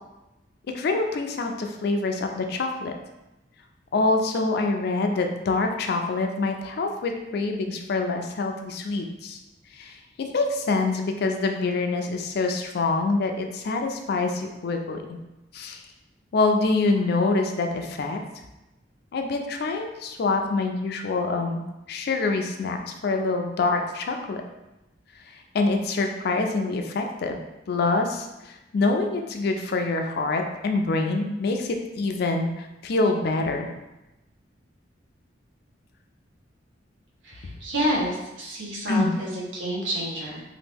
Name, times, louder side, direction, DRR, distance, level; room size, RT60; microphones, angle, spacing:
voice 1, 0.7-2.9 3.9-9.4 9.7-15.2 15.5-15.8 16.3-18.2 19.1-21.6 21.9-24.4 25.3-27.4 27.7-33.7 38.9-39.1, left 3 dB, 55° left, 4 dB, 0.4 m, -25 dB
voice 2, 37.2-40.4, equal, 80° right, -3 dB, 0.9 m, -29 dB
3.0 x 2.5 x 3.4 m, 0.98 s
head